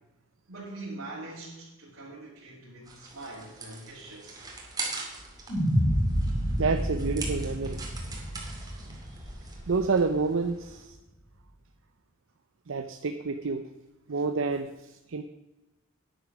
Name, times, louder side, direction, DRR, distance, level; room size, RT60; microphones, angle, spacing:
voice 1, 0.5-4.5, right 2 dB, 85° right, -8 dB, 3.0 m, -43 dB
sound 1, 2.8-10.8, right 3 dB, 20° right, 2.4 m, -42 dB
sound 2, 5.5-9.8, equal, 30° left, 5.2 m, -29 dB
voice 2, 6.6-7.8 9.7-11.0 12.7-13.7 14.1-15.2, right 4 dB, 65° right, 8 dB, 0.6 m, -28 dB
9.6 x 9.4 x 6.2 m, 1.0 s
head